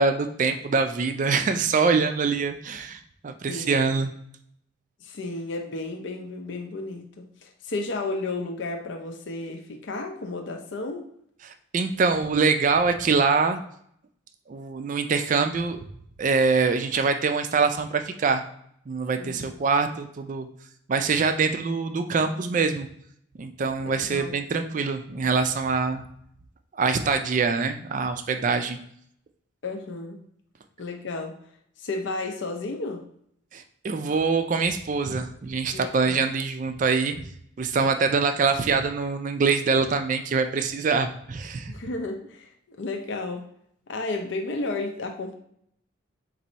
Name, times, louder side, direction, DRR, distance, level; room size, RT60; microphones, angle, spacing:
voice 1, 0.0-4.1 11.7-13.6 14.5-15.8 16.2-18.4 18.9-20.5 20.9-22.9 23.4-26.0 26.8-28.8 33.5-37.1 37.6-41.7, right 4 dB, 40° right, 8 dB, 0.3 m, -24 dB
voice 2, 3.5-3.9 5.0-11.1 19.2-19.6 23.8-24.3 29.6-30.2 30.8-31.4 31.8-33.0 35.7-36.3 41.7-43.4 43.9-45.3, left 2 dB, 65° left, 2 dB, 0.5 m, -33 dB
4.0 x 2.6 x 4.2 m, 0.69 s
head